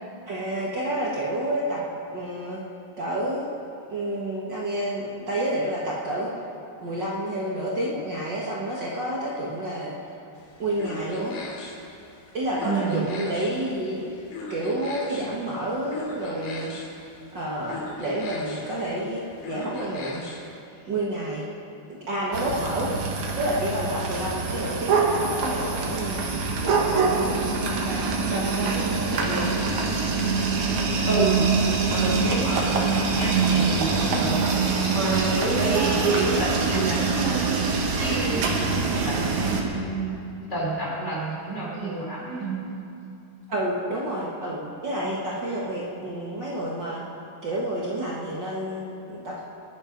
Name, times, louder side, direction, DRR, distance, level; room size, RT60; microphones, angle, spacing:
voice 1, 0.3-1.8 2.1-2.6 3.0-3.5 3.9-6.3 6.8-9.9 10.6-11.3 12.3-14.0 14.5-16.7 17.3-19.2 19.5-20.2 20.9-21.4 22.1-22.9 23.3-29.6 38.3-38.7 43.5-47.0 47.4-49.4, right 1 dB, 75° right, -5 dB, 1.0 m, -29 dB
sound 1, 10.4-20.6, left 2 dB, 75° left, 4.2 m, -40 dB
voice 2, 12.6-13.0 31.1-31.5 31.9-34.5 34.9-37.6 38.0-38.5 39.0-40.2 40.5-42.5, right 3 dB, 15° left, -6 dB, 4.0 m, -29 dB
sound 2, 22.3-39.6, right 4 dB, 60° right, 2.4 m, -24 dB
22.5 x 10.5 x 5.2 m, 2.7 s
omnidirectional pair, 4.6 m